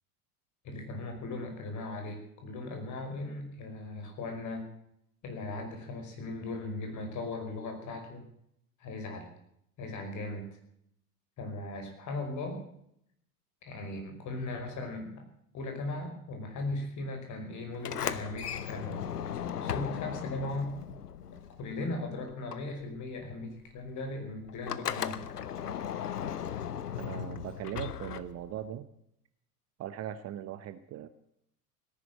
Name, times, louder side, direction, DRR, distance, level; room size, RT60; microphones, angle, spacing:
voice 1, 0.6-4.7 5.2-8.3 8.8-9.3 9.8-10.5 11.4-12.6 13.6-15.2 15.5-19.0 19.6-20.7 21.6-25.3, left 2 dB, 40° left, 5 dB, 5.4 m, -38 dB
Sliding door, 17.7-22.0 22.3-28.7, left 9 dB, 80° left, 0.9 m, -37 dB
voice 2, 27.0-28.9 29.8-31.1, right 11 dB, 30° right, 13 dB, 1.0 m, -39 dB
17.5 x 11.0 x 7.6 m, 0.74 s
figure-of-eight pair, 75°, 46 cm